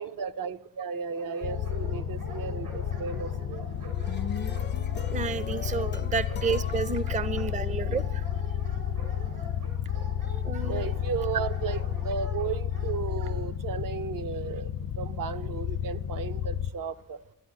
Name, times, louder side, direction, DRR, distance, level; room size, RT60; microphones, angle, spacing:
voice 1, 0.0-3.7 5.9-6.1 7.1-7.2 10.7-17.2, right 6 dB, 65° right, 0.7 m, -35 dB
Dog, 1.1-13.3, right 1 dB, 80° right, 7.1 m, -45 dB
sound 1, 1.4-16.7, left 9 dB, 80° left, 0.6 m, -31 dB
sound 2, 3.7-8.1, left 7 dB, 30° left, 0.5 m, -42 dB
voice 2, 5.1-8.2 10.4-10.9, right 5 dB, 20° right, 0.5 m, -31 dB
12.5 x 9.9 x 9.6 m
cardioid pair, 100°, 36 cm